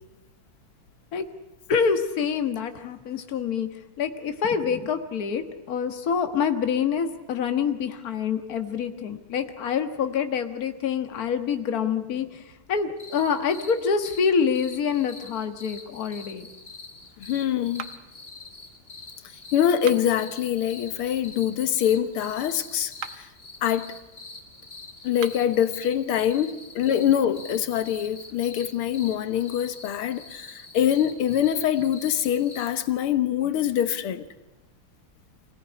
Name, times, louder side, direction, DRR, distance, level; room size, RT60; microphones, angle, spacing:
voice 1, 1.7-3.7 4.0-12.4 12.7-16.5, left 6 dB, 45° left, 1.8 m, -26 dB
sound 1, 13.0-32.7, left 3 dB, 25° left, 2.5 m, -45 dB
voice 2, 17.2-17.9 19.5-23.3 23.6-24.0 25.0-34.3, left 10 dB, 85° left, 2.0 m, -24 dB
sound 2, 17.7-18.3 19.7-20.3 22.9-23.4 25.1-25.6, right 9 dB, 75° right, 1.8 m, -40 dB
25.5 x 17.5 x 9.8 m
omnidirectional pair, 2.3 m